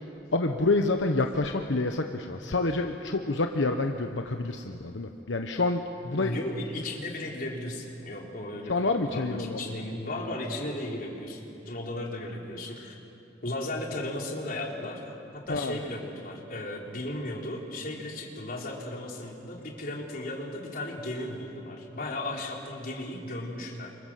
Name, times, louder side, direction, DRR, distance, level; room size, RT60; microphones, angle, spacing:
voice 1, 0.3-6.4 8.7-9.7 15.5-15.8, left 2 dB, 80° left, 5 dB, 1.1 m, -28 dB
voice 2, 6.2-11.4 11.7-13.0 13.4-23.9, left 1 dB, 50° left, -1 dB, 4.0 m, -35 dB
29.0 x 26.0 x 7.6 m, 3.0 s
head